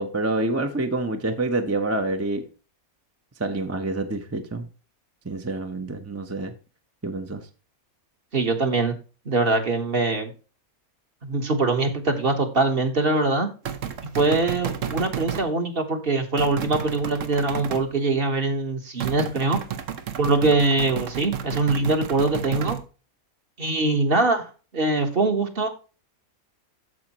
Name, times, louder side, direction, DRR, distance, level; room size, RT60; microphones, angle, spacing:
voice 1, 0.0-2.5 3.4-4.7 5.2-6.5 7.0-7.5, right 2 dB, 15° right, 0.6 m, -27 dB
voice 2, 8.3-8.9 9.2-10.3 11.2-13.5 14.1-19.6 20.2-22.8 23.6-25.7, right 3 dB, 40° right, 1.4 m, -23 dB
sound 1, 13.7-15.5 16.4-17.9 19.0-22.8, right 8 dB, 60° right, 1.2 m, -32 dB
14.0 x 5.1 x 3.0 m
omnidirectional pair, 1.5 m